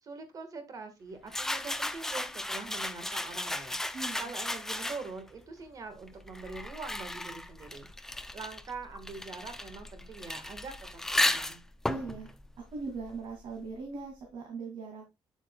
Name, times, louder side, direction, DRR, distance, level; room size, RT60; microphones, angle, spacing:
voice 1, 0.0-7.9 8.3-11.6, right 4 dB, 40° right, 8 dB, 1.4 m, -44 dB
sound 1, 1.3-5.3 6.1-13.5, left 1 dB, 5° left, 0.4 m, -35 dB
voice 2, 3.9-4.3 11.9-12.3 12.7-15.0, right 4 dB, 65° right, 1 dB, 2.2 m, -39 dB
8.0 x 7.9 x 2.2 m, 0.23 s
cardioid pair, 160°, 9 cm